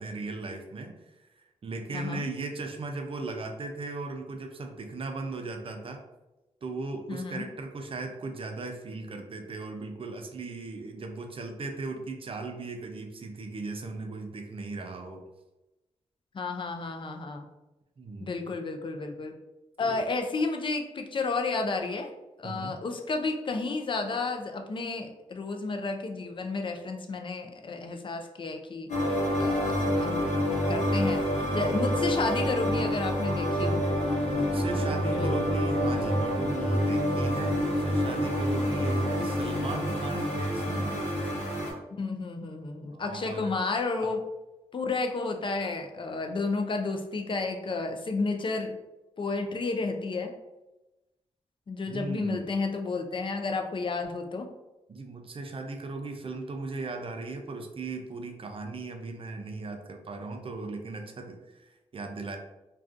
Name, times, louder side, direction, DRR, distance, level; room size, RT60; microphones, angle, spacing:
voice 1, 0.0-6.0 6.6-15.2 18.0-18.6 19.8-20.1 22.4-22.8 31.5-31.9 34.3-41.0 42.9-43.6 44.0-44.1 51.9-52.5 54.9-62.4, right 3 dB, 45° right, 4 dB, 0.5 m, -38 dB
voice 2, 7.1-7.4 16.3-17.5 18.2-19.3 19.8-22.1 22.4-30.4 30.7-33.8 35.1-35.4 42.0-44.2 44.7-48.8 49.2-50.3 51.7-54.5, left 3 dB, 40° left, 4 dB, 0.4 m, -32 dB
sound 1, 28.9-41.7, equal, 70° left, 0.9 m, -27 dB
2.3 x 2.3 x 2.5 m, 1.0 s
supercardioid pair, 45°, 13 cm